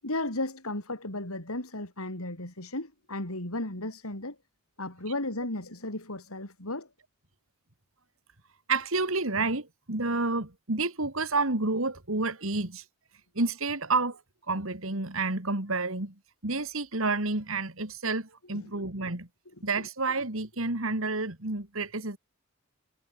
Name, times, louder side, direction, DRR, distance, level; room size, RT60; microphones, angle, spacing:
voice 1, 0.0-4.4 4.8-6.9 18.7-18.8, left 2 dB, 85° left, 5.8 m, -34 dB
voice 2, 8.7-12.8 13.3-14.2 14.5-16.1 16.4-19.3 19.6-22.2, right 3 dB, 70° right, 2.8 m, -29 dB
head